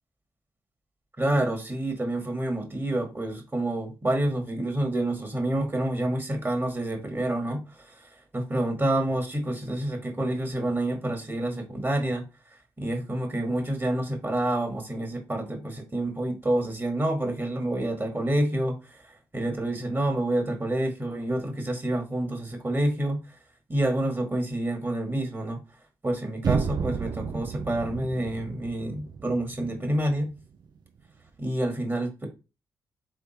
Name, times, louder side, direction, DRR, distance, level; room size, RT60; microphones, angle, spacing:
voice 1, 1.2-12.2 12.8-23.4 23.7-25.6 26.0-30.3 31.4-32.3, right 1 dB, 25° right, 1.7 m, -28 dB
sound 1, 26.4-30.4, right 6 dB, 55° right, 0.4 m, -32 dB
3.6 x 3.3 x 4.2 m
supercardioid pair, 45°, 8 cm